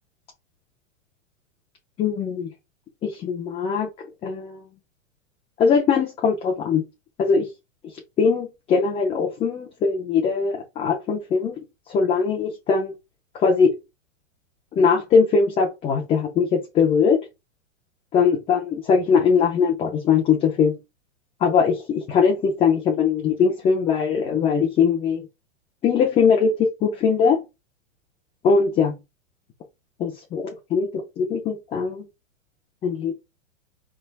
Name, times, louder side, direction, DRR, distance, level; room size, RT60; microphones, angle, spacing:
voice 1, 2.0-2.5 3.0-3.9 4.2-4.6 5.6-6.8 7.2-7.5 8.2-11.6 11.9-12.9 13.4-13.7 14.7-17.2 18.1-20.8 21.4-25.2 25.8-27.4 28.4-28.9 30.0-30.4 30.7-30.9 31.2-32.1 32.8-33.1, left 5 dB, 15° left, 0.4 m, -21 dB
4.2 x 3.4 x 2.3 m
hypercardioid pair, 135°, 39 cm